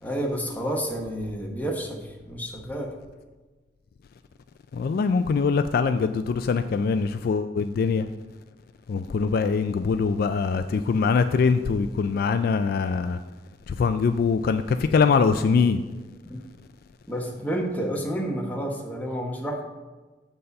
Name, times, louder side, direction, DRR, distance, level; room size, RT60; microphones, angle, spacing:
voice 1, 0.0-2.9 16.2-16.4 17.1-19.6, equal, 10° left, 0 dB, 1.2 m, -30 dB
voice 2, 4.7-8.1 8.9-13.2 13.7-15.8, left 5 dB, 55° left, 10 dB, 0.3 m, -23 dB
7.8 x 4.1 x 6.6 m, 1.2 s
head